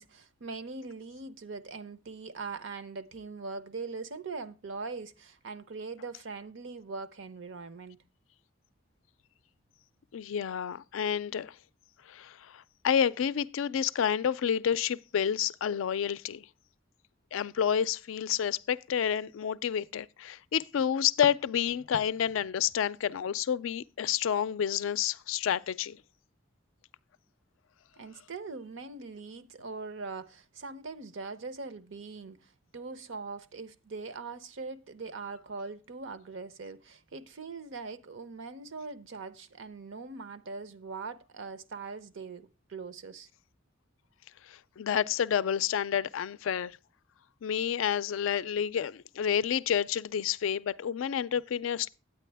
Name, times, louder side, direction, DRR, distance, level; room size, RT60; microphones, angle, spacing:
voice 1, 0.0-8.0 28.0-43.3, right 4 dB, 70° right, 0.7 m, -41 dB
voice 2, 10.1-11.5 12.1-16.4 17.3-26.0 44.5-46.8 47.4-51.9, left 8 dB, 80° left, 0.4 m, -29 dB
9.1 x 9.0 x 3.3 m
head